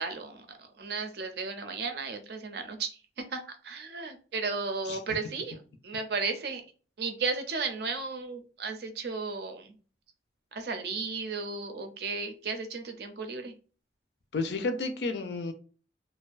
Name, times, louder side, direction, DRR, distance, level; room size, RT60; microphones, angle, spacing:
voice 1, 0.0-6.6 7.0-9.7 10.5-13.5, right 4 dB, 65° right, 0.5 m, -34 dB
voice 2, 14.3-15.5, left 3 dB, 75° left, 0.4 m, -31 dB
2.5 x 2.2 x 2.3 m
head